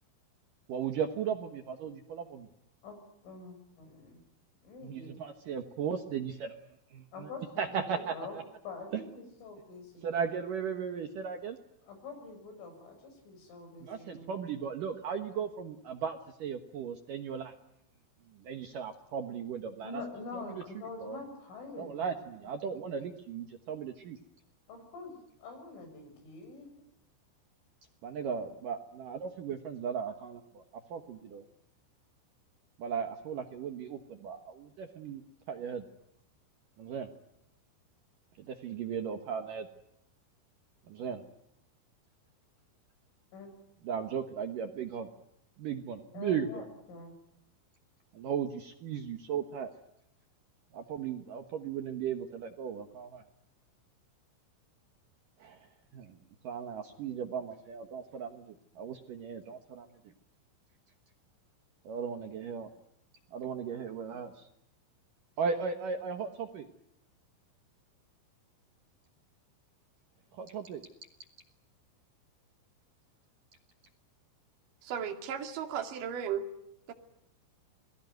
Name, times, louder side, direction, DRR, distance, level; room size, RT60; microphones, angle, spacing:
voice 1, 0.7-2.5 4.8-6.5 6.9-7.3 7.6-8.4 8.9-9.0 10.0-11.6 13.8-17.5 18.4-20.0 20.3-20.6 21.0-21.2 21.8-24.2 28.0-30.6 30.9-31.4 32.8-35.2 35.5-35.8 36.8-37.1 38.4-39.7 40.9-41.2 43.8-45.1 45.6-46.6 48.1-49.7 50.7-53.2 55.4-55.7 55.9-56.2 56.4-60.1 61.8-62.7 63.3-64.5 65.4-66.7 70.3-70.9, right 7 dB, 75° right, 6 dB, 2.0 m, -36 dB
voice 2, 2.8-4.2 4.6-5.2 7.1-10.2 11.8-14.4 19.8-22.2 22.7-22.8 24.7-26.7 43.3-43.5 46.1-47.2, left 3 dB, 70° left, 6 dB, 9.0 m, -46 dB
voice 3, 74.8-76.4 76.9-77.0, right 8 dB, 50° right, 4 dB, 3.5 m, -35 dB
28.0 x 20.5 x 9.3 m, 0.79 s
omnidirectional pair, 5.9 m